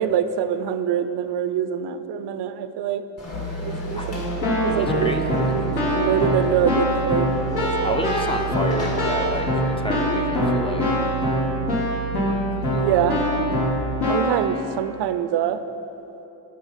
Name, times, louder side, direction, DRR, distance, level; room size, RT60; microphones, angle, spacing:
voice 1, 0.0-3.0 3.6-4.2 4.6-5.2 5.5-7.3 7.6-8.0 12.7-13.2 14.1-15.6, right 9 dB, 70° right, 11 dB, 0.6 m, -24 dB
Conversation / Crowd, 3.2-9.4, left 1 dB, 35° left, 2.1 m, -35 dB
sound 1, 3.3-13.8, right 6 dB, 85° left, 0.8 m, -31 dB
Keyboard (musical), 4.1-14.4, left 1 dB, 65° left, 2.8 m, -24 dB
voice 2, 4.6-5.5 7.8-11.2 12.6-13.0, equal, 15° left, 4 dB, 0.7 m, -31 dB
10.5 x 7.7 x 5.6 m, 2.9 s
cardioid pair, 115°, 42 cm